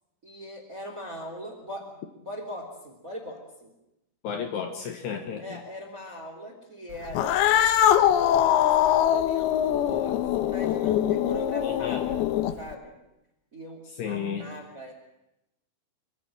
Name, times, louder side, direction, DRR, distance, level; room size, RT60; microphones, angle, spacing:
voice 1, 0.2-3.7 5.4-12.3 12.6-12.9 13.5-14.9, equal, 20° right, 3 dB, 2.7 m, -40 dB
voice 2, 4.2-5.6 11.6-12.0 14.0-14.5, left 7 dB, 65° left, 5 dB, 2.9 m, -33 dB
Cat, 7.1-12.7, left 11 dB, 85° left, 2.2 m, -23 dB
24.5 x 24.0 x 6.3 m, 0.88 s
omnidirectional pair, 5.9 m